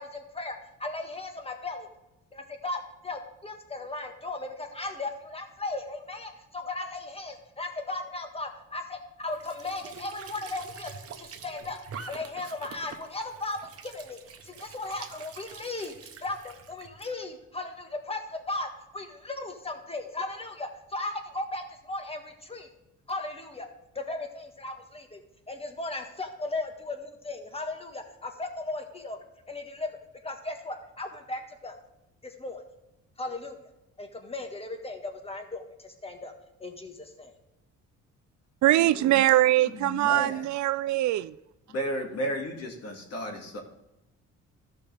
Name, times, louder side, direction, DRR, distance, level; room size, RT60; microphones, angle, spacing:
voice 1, 0.0-1.9 2.3-10.9 11.2-11.8 12.1-22.7 23.1-23.7 23.9-25.2 25.5-29.2 29.5-30.0 30.2-31.8 32.2-32.6 33.2-33.6 34.0-36.3 36.6-37.3, left 2 dB, 20° left, 1.6 m, -36 dB
Squeak / Sink (filling or washing) / Trickle dribble, 9.2-17.1, right 6 dB, 50° right, 1.0 m, -46 dB
voice 2, 38.6-41.3, right 15 dB, 70° right, 0.4 m, -22 dB
voice 3, 39.6-40.4 41.7-43.6, equal, 55° left, 2.3 m, -33 dB
14.0 x 5.8 x 3.5 m
cardioid pair, 90°, 30 cm